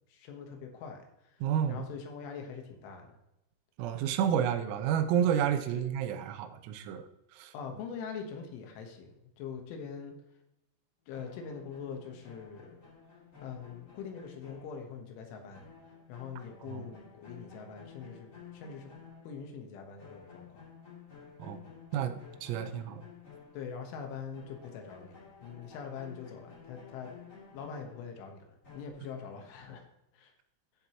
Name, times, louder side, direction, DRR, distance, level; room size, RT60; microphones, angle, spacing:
voice 1, 0.1-1.4 1.7-3.2 5.7-5.8 7.5-10.2 11.1-12.8 13.4-15.7 16.1-18.9 19.2-20.6 22.6-22.7 23.5-27.1 27.5-29.9 30.1-30.3, left 6 dB, 75° left, 4 dB, 3.6 m, -43 dB
voice 2, 1.4-1.8 3.8-7.1 7.3-7.5 16.7-16.8 21.4-21.6 21.9-22.2 22.4-23.0, right 9 dB, 90° right, 9 dB, 3.5 m, -30 dB
sound 1, 11.1-15.3 15.5-19.7 20.0-24.1 24.3-28.9, left 6 dB, 25° left, 2.0 m, -53 dB
14.5 x 7.5 x 3.0 m, 0.87 s
omnidirectional pair, 5.9 m